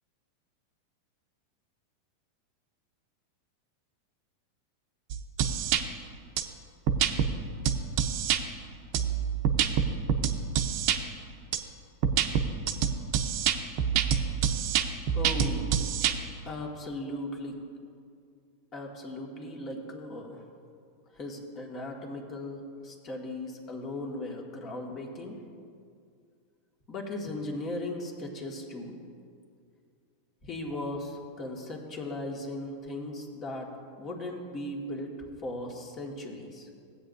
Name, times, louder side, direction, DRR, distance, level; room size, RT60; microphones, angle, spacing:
sound 1, 5.1-5.8 6.4-6.5 6.9-7.3 7.7-8.4 8.9-11.0 11.5-11.6 12.0-16.1, right 8 dB, 55° right, 0.7 m, -26 dB
voice 1, 15.1-15.7 16.4-17.6 18.7-20.4 21.1-25.5 26.9-28.9 30.4-33.7 34.0-35.1 35.4-36.7, left 1 dB, 35° left, 0 dB, 1.8 m, -37 dB
16.0 x 8.4 x 2.6 m, 2.3 s
hypercardioid pair, 115°, 0 cm